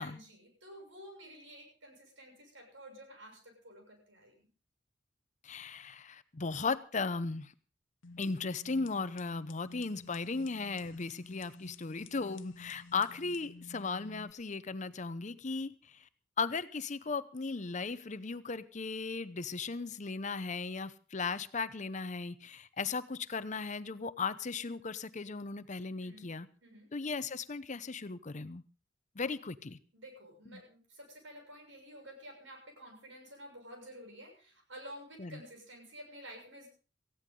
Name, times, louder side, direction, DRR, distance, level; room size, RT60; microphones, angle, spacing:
voice 1, 0.0-4.5 26.0-26.3 26.6-26.9 29.9-36.7, equal, 85° right, 2 dB, 6.9 m, -51 dB
voice 2, 5.4-7.5 8.2-16.1 16.4-26.5 26.9-28.6 29.2-29.8 30.5-30.6 35.2-35.4, left 4 dB, 40° left, 14 dB, 0.7 m, -37 dB
sound 1, 8.0-14.3, left 3 dB, 85° left, 0.8 m, -52 dB
18.5 x 15.0 x 3.8 m, 0.38 s
head